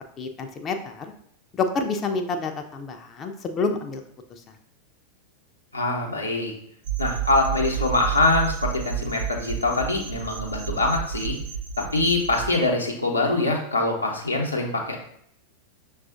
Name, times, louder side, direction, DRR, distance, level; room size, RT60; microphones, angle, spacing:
voice 1, 0.2-1.1 1.5-4.0 4.3-4.4, left 4 dB, 25° left, 5 dB, 0.4 m, -28 dB
voice 2, 5.7-6.5 7.0-11.4 11.8-15.0, left 2 dB, 80° left, -1 dB, 0.8 m, -24 dB
sound 1, 6.8-12.5, right 9 dB, 55° right, 0.6 m, -31 dB
6.0 x 2.4 x 2.5 m, 0.69 s
figure-of-eight pair, 90°, 0 cm